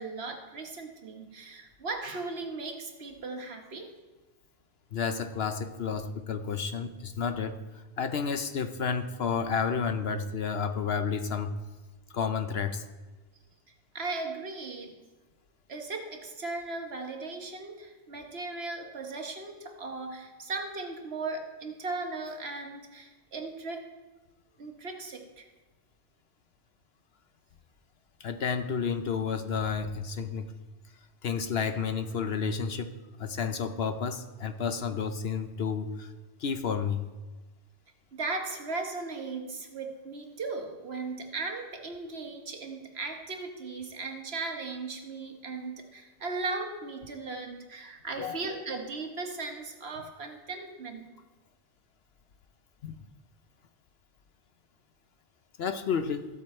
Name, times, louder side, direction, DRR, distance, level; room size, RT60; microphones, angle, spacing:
voice 1, 0.0-3.9 13.9-15.0 15.7-23.9 24.6-25.5 38.1-51.1, right 3 dB, 55° right, 4 dB, 1.5 m, -37 dB
voice 2, 4.9-11.5 12.1-12.8 28.2-30.5 31.2-32.9 33.2-36.1 36.4-37.1 48.2-48.6 52.8-53.0 55.6-56.3, left 6 dB, 60° left, 9 dB, 0.8 m, -31 dB
15.0 x 7.6 x 4.3 m, 1.2 s
omnidirectional pair, 1.3 m